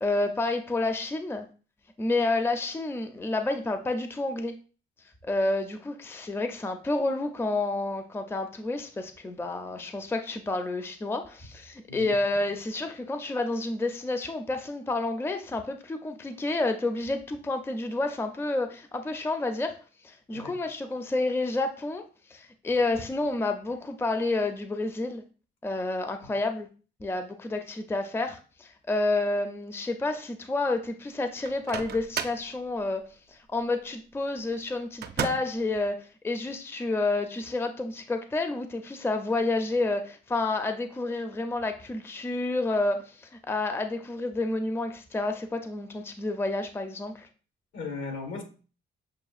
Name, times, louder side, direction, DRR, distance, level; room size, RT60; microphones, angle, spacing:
voice 1, 0.0-1.5 2.0-4.5 5.2-19.8 20.0-22.0 22.3-25.2 25.6-26.7 27.0-47.3, left 2 dB, 10° left, 7 dB, 0.4 m, -29 dB
Microwave oven, 31.4-32.5 35.0-35.6, right 7 dB, 55° right, 0.5 m, -33 dB
voice 2, 47.7-48.4, left 4 dB, 80° left, 3 dB, 1.4 m, -36 dB
6.4 x 2.4 x 2.4 m, 0.37 s
cardioid pair, 90°, 20 cm